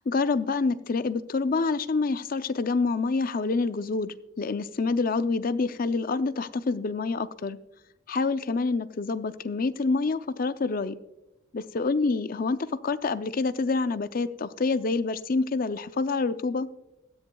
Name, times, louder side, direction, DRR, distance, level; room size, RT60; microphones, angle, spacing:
voice 1, 0.1-7.6 8.1-11.0 11.5-16.7, left 4 dB, 45° left, 12 dB, 0.5 m, -27 dB
17.0 x 13.5 x 2.3 m, 0.92 s
head